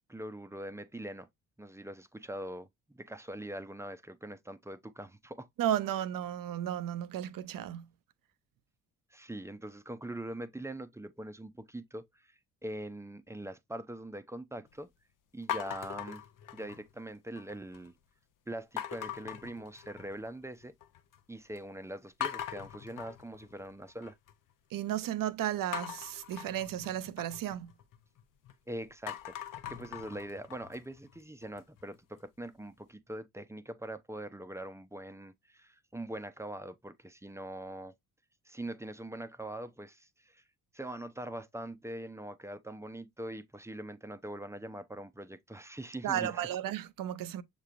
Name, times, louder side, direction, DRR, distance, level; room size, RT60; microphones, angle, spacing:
voice 1, 0.1-1.3 1.6-5.5 9.1-12.3 12.6-14.9 15.3-16.2 16.5-17.9 18.5-20.7 21.3-24.2 28.7-29.4 29.7-37.9 38.5-40.4 40.7-46.5, right 1 dB, 5° right, 0.6 m, -42 dB
voice 2, 5.6-7.8 24.7-27.7 46.0-47.4, right 11 dB, 55° right, 0.6 m, -34 dB
sound 1, 15.5-17.0 17.4-17.9 18.8-20.3 20.6-21.2 21.6-21.7 22.2-24.3 25.7-28.5 28.9-31.8, left 10 dB, 50° left, 0.6 m, -41 dB
6.5 x 3.0 x 2.5 m
hypercardioid pair, 45°, 41 cm